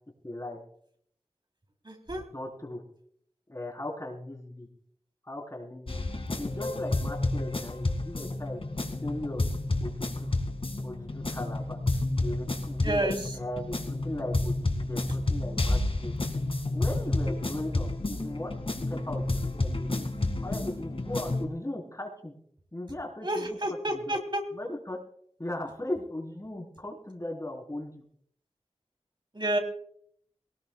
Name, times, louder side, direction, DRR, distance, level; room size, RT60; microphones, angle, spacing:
voice 1, 0.2-0.6 2.1-2.8 3.5-4.7 5.2-6.0 6.3-8.6 9.0-9.4 9.8-10.3 10.8-11.8 12.2-16.2 16.7-18.5 18.9-20.0 20.4-22.3 22.7-23.6 23.9-24.2 24.5-25.0 25.4-28.0, left 1 dB, 30° left, 1 dB, 3.9 m, -38 dB
voice 2, 1.8-2.3 12.8-13.3 23.2-24.4 29.3-29.6, right 1 dB, 45° right, 3 dB, 3.4 m, -29 dB
sound 1, 5.9-21.4, left 2 dB, 55° left, 2.1 m, -30 dB
22.5 x 18.5 x 2.3 m, 0.65 s
wide cardioid pair, 50°, 11 cm